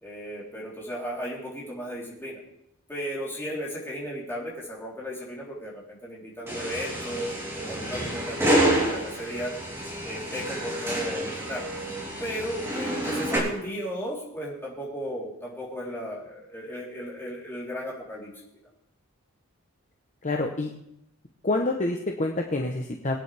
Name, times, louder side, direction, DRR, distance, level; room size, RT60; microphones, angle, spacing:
voice 1, 0.0-2.4 2.9-7.3 7.7-9.5 10.0-11.6 12.2-18.3, equal, 10° left, -6 dB, 3.7 m, -35 dB
sound 1, 6.5-13.4, right 1 dB, 10° right, 3.3 m, -28 dB
voice 2, 20.2-20.7 21.4-23.2, left 2 dB, 35° left, 2 dB, 0.9 m, -27 dB
23.0 x 9.3 x 3.5 m, 0.80 s
head